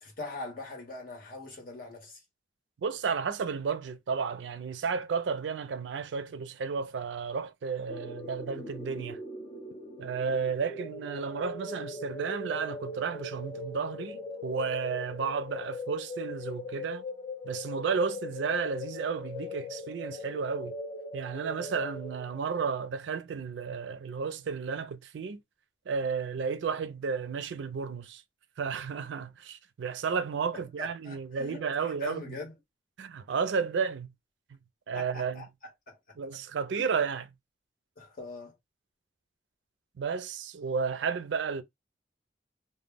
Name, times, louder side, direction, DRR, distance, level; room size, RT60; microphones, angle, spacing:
voice 1, 0.0-2.2 30.5-32.5 34.9-35.4 35.9-36.0 36.8-36.9 38.0-38.6, left 3 dB, 50° left, 0.9 m, -42 dB
voice 2, 2.8-9.2 10.0-17.0 17.4-20.7 21.1-25.4 25.9-28.2 28.6-32.2 33.0-34.1 34.5-34.6 34.9-35.4 36.2-37.3 40.0-41.6, right 5 dB, 75° right, 0.4 m, -32 dB
sound 1, 7.9-22.6, left 2 dB, 30° left, 0.4 m, -40 dB
2.1 x 2.0 x 3.4 m
head